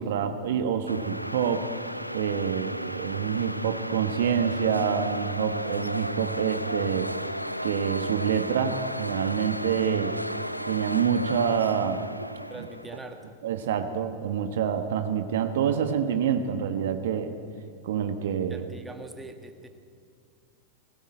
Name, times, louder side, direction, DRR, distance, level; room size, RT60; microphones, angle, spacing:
voice 1, 0.0-1.7 2.1-7.1 7.6-10.2 10.7-12.1 13.4-17.3 17.8-18.6, right 8 dB, 60° right, 8 dB, 1.4 m, -27 dB
sound 1, 0.9-13.2, equal, 90° left, 0.6 m, -34 dB
voice 2, 12.5-13.4 18.5-19.7, right 2 dB, 10° right, 6 dB, 1.8 m, -42 dB
21.0 x 17.5 x 9.0 m, 2.3 s
figure-of-eight pair, 90°, 0 cm